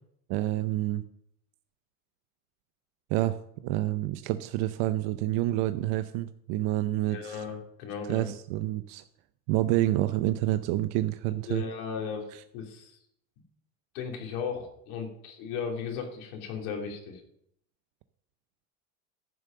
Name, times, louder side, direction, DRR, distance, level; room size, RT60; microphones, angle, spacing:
voice 1, 0.3-1.0 3.1-3.4 3.6-7.4 8.1-9.0 9.5-11.6 12.3-12.4, right 15 dB, 65° right, 11 dB, 0.7 m, -28 dB
voice 2, 7.1-8.3 11.5-12.3 12.5-13.0 13.9-17.2, left 6 dB, 75° left, 1 dB, 3.0 m, -36 dB
10.5 x 6.5 x 6.4 m, 0.72 s
supercardioid pair, 115°, 44 cm